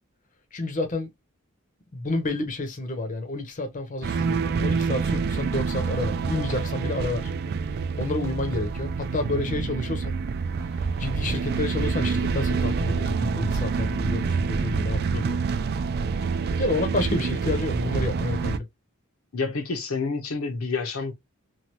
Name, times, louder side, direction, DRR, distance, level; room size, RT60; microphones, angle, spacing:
voice 1, 0.5-1.1 1.9-7.3 7.7-10.2 10.7-15.4 16.6-18.7, left 2 dB, 40° left, 0.7 m, -29 dB
sound 1, 4.0-18.6, right 5 dB, 50° right, 0.3 m, -27 dB
voice 2, 19.3-21.1, left 4 dB, 75° left, 0.8 m, -29 dB
3.1 x 2.3 x 2.8 m
head